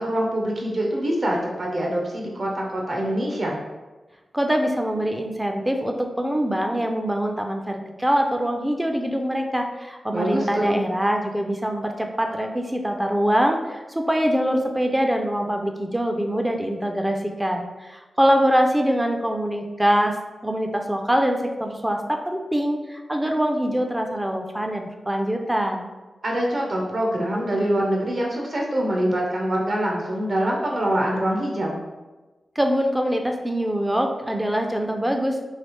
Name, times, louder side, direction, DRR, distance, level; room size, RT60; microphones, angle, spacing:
voice 1, 0.0-3.6 10.1-10.8 26.2-31.8, right 1 dB, 50° right, -1 dB, 0.6 m, -24 dB
voice 2, 4.3-20.2 20.4-25.9 32.6-35.4, equal, 10° right, 3 dB, 0.3 m, -24 dB
3.2 x 2.7 x 3.0 m, 1.2 s
wide cardioid pair, 100°, 0 cm